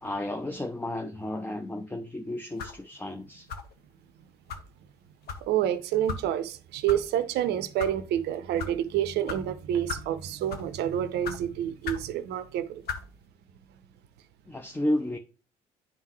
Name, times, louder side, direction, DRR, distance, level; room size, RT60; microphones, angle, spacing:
voice 1, 0.0-3.5 14.5-15.2, left 1 dB, 10° left, 0.6 m, -32 dB
sound 1, 2.6-2.8 3.5-3.8 4.5-4.7 5.3-5.4 6.1-6.2 6.9-7.0 7.6-7.9 8.6-8.7 9.3-9.4 9.9-10.1 10.5-10.7 11.2-11.4 11.8-12.1 12.8-13.0, left 5 dB, 55° left, 0.9 m, -35 dB
voice 2, 5.4-12.8, right 10 dB, 60° right, 0.6 m, -28 dB
9.8 x 3.7 x 3.0 m
hypercardioid pair, 55°, 19 cm